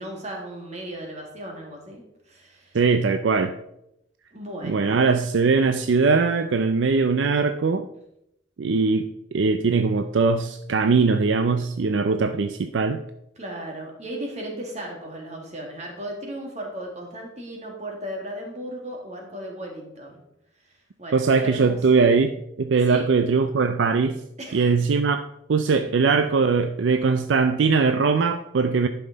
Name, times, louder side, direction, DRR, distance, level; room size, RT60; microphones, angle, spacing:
voice 1, 0.0-2.8 4.3-4.9 8.7-8.9 13.4-20.2 20.7-22.0 22.9-23.1 24.4-24.8 25.7-25.8, right 1 dB, 40° right, 1 dB, 2.0 m, -36 dB
voice 2, 2.7-3.5 4.6-7.9 8.6-13.0 21.1-22.3 22.6-24.2 24.5-25.2 25.5-28.9, right 4 dB, 85° right, 8 dB, 0.5 m, -21 dB
11.0 x 5.8 x 4.0 m, 0.81 s
head